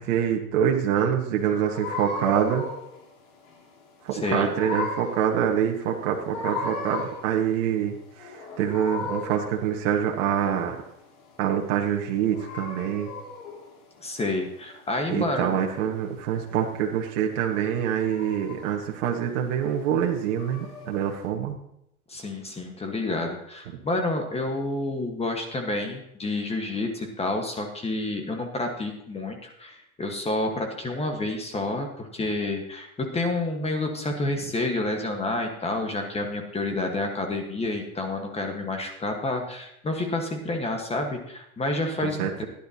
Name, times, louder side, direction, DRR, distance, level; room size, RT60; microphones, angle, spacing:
voice 1, 0.0-2.6 4.0-10.7 11.4-13.1 15.1-21.6 42.2-42.4, right 9 dB, 60° right, 1 dB, 1.6 m, -25 dB
sound 1, 1.4-21.3, left 3 dB, 65° left, 3.7 m, -38 dB
voice 2, 4.1-4.5 14.0-15.6 22.1-42.4, left 2 dB, 15° left, 3 dB, 1.4 m, -29 dB
16.0 x 10.5 x 2.9 m, 0.77 s
hypercardioid pair, 120°, 43 cm